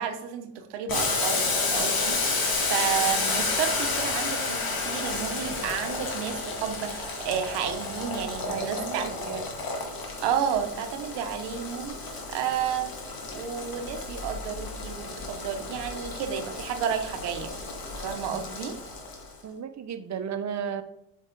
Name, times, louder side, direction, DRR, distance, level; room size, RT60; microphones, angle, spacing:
voice 1, 0.0-9.0 10.2-12.9 13.3-17.7 18.0-18.8, right 8 dB, 85° right, 6 dB, 0.9 m, -31 dB
Boiling, 0.9-19.3, left 3 dB, 60° left, 2.0 m, -31 dB
voice 2, 8.5-9.4 19.4-20.8, right 7 dB, 45° right, 7 dB, 0.9 m, -34 dB
7.8 x 5.5 x 3.8 m, 0.78 s
supercardioid pair, 60°, 39 cm